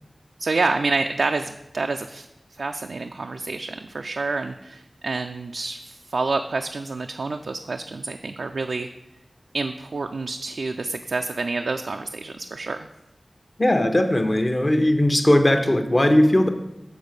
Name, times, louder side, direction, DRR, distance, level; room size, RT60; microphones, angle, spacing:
voice 1, 0.4-2.3 2.6-8.9 9.5-12.9, right 3 dB, 90° right, 5 dB, 0.3 m, -28 dB
voice 2, 13.6-16.5, left 1 dB, 35° left, 7 dB, 0.8 m, -18 dB
7.1 x 4.0 x 6.4 m, 0.89 s
wide cardioid pair, 60°, 0 cm